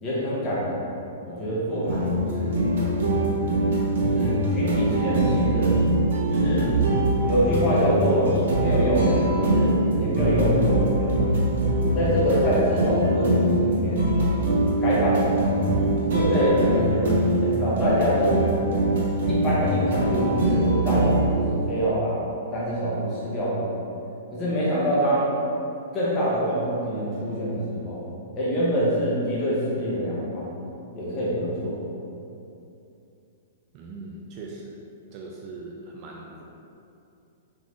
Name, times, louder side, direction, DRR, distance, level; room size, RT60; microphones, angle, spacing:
voice 1, 0.0-0.9 1.2-2.6 4.0-5.7 6.3-6.8 7.3-11.1 11.9-14.1 14.8-15.4 16.1-18.4 19.3-22.2 22.5-23.6 24.3-25.3 25.9-28.0 28.3-30.5 30.9-31.7, equal, 20° left, -8 dB, 1.0 m, -25 dB
Relaxing Music, 1.9-21.3, right 1 dB, 65° right, 1.0 m, -23 dB
voice 2, 33.7-34.8 35.1-36.4, right 3 dB, 25° right, -1 dB, 0.3 m, -40 dB
3.7 x 3.7 x 3.2 m, 2.7 s
hypercardioid pair, 170°, 0 cm